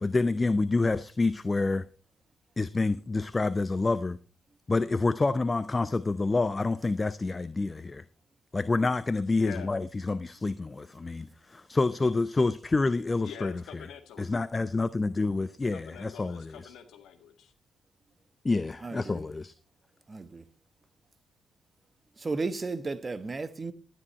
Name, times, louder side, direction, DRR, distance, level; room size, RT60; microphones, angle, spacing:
voice 1, 0.0-1.9 2.6-4.2 4.7-8.0 8.5-13.5 14.2-16.7 18.4-19.5, left 3 dB, 30° left, 0.7 m, -28 dB
voice 2, 9.4-9.7 13.2-14.3 15.7-17.5, left 8 dB, 70° left, 1.8 m, -45 dB
voice 3, 18.8-19.2 20.1-20.4 22.2-23.7, right 3 dB, 35° right, 1.2 m, -34 dB
12.5 x 10.0 x 4.3 m
hypercardioid pair, 40°, 0 cm